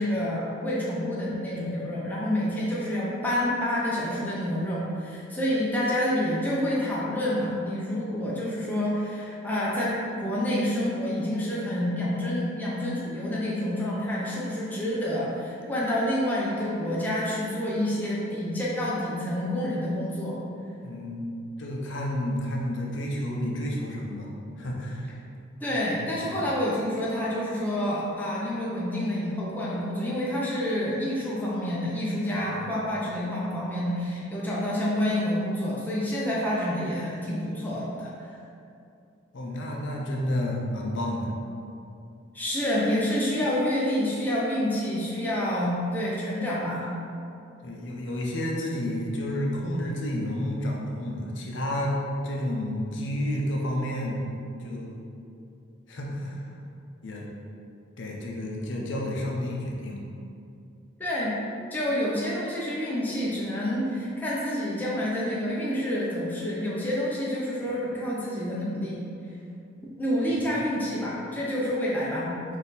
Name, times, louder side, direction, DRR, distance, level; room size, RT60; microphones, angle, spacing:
voice 1, 0.0-20.4 25.6-38.4 42.3-46.9 61.0-61.4 61.7-69.1 70.0-72.4, left 1 dB, 10° left, -7 dB, 0.5 m, -28 dB
voice 2, 20.8-21.3 21.6-24.3 24.6-25.1 25.7-25.9 26.1-26.4 32.4-32.7 39.3-41.3 47.6-54.2 54.6-55.0 55.9-56.6 57.0-57.3 58.0-60.1 70.3-70.5, left 1 dB, 65° left, -2 dB, 0.6 m, -31 dB
4.1 x 2.6 x 3.9 m, 2.5 s
head